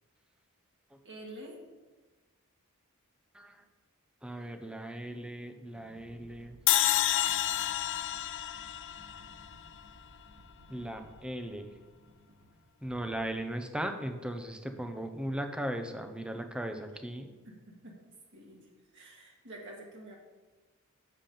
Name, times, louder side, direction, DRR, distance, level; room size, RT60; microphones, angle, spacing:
voice 1, 1.0-1.5 17.4-17.6 17.8-18.0 18.3-18.6 18.9-20.1, right 1 dB, 55° right, -2 dB, 1.5 m, -47 dB
voice 2, 4.2-6.6 10.7-11.7 12.8-17.3, right 1 dB, 5° right, 6 dB, 0.6 m, -37 dB
sound 1, 5.6-13.1, equal, 80° right, 2.8 m, -58 dB
sound 2, 6.7-9.9, left 13 dB, 55° left, 0.3 m, -29 dB
7.4 x 7.0 x 5.4 m, 1.3 s
head